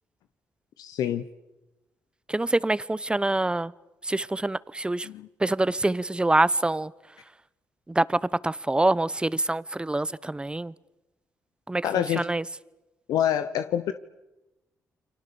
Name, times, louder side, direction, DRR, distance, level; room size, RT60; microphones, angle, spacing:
voice 1, 0.8-1.3 5.0-5.3 11.8-12.3 13.1-13.9, left 10 dB, 85° left, 10 dB, 1.0 m, -26 dB
voice 2, 2.3-3.7 4.0-5.1 5.4-6.9 7.9-10.7 11.7-12.4, right 2 dB, 15° right, 19 dB, 1.0 m, -25 dB
29.5 x 24.5 x 7.1 m, 1.0 s
supercardioid pair, 60°, 6 cm